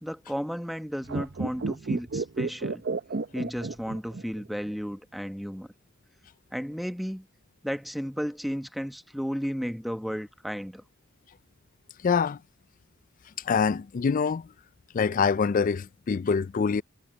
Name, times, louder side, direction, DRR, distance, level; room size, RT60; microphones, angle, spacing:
voice 1, 0.0-2.8 3.3-5.7 6.5-7.3 7.6-10.8, equal, ahead, 1.1 m, -33 dB
sound 1, 1.0-4.4 4.7-4.8, right 3 dB, 55° right, 0.6 m, -31 dB
voice 2, 12.0-12.4 13.4-14.5 14.9-16.8, left 5 dB, 40° left, 0.3 m, -25 dB
head